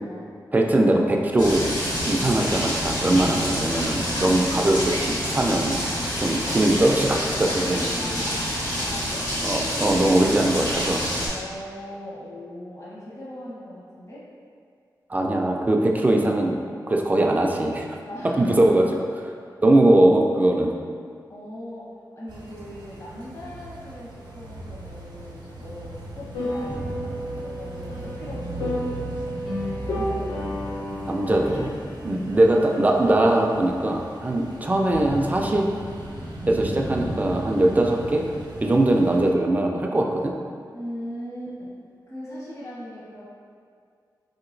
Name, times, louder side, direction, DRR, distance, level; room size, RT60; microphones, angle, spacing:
voice 1, 0.5-1.7 2.0-5.8 6.1-7.8 9.4-11.0 15.1-16.6 16.9-18.0 18.4-18.8 19.6-20.8 31.1-31.7 32.0-35.7 36.5-38.2 38.6-40.3, right 1 dB, 20° right, 1 dB, 0.3 m, -21 dB
sound 1, 1.4-11.3, equal, 60° left, 1.3 m, -27 dB
voice 2, 7.4-9.2 11.3-14.2 18.0-19.0 21.3-21.9 22.2-29.6 29.9-30.4 34.3-34.5 40.7-41.7 42.1-43.2, equal, 40° left, -8 dB, 1.0 m, -39 dB
sound 2, 22.3-39.3, right 1 dB, 70° right, 0.6 m, -37 dB
sound 3, 26.3-31.7, equal, 85° left, 0.7 m, -31 dB
3.8 x 2.8 x 2.5 m, 2.2 s
wide cardioid pair, 85°, 8 cm